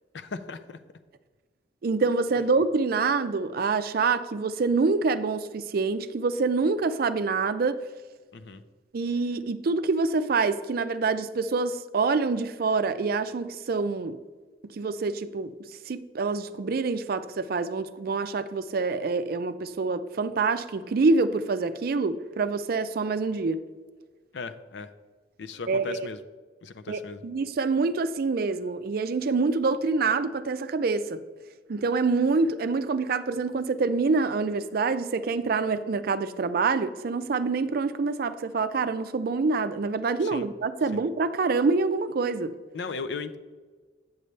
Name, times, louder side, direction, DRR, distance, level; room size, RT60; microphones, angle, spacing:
voice 1, 0.1-0.8 2.1-2.2 8.3-8.6 24.3-24.9 25.4-26.2 26.6-27.2 40.2-40.5 40.9-41.0 42.7-43.4, left 4 dB, 70° left, 10 dB, 0.5 m, -37 dB
voice 2, 1.8-7.8 8.9-14.2 14.7-15.5 15.9-23.6 25.7-26.1 26.9-31.2 31.7-42.5, right 4 dB, 55° right, 11 dB, 0.4 m, -26 dB
8.8 x 6.7 x 3.2 m, 1.4 s
head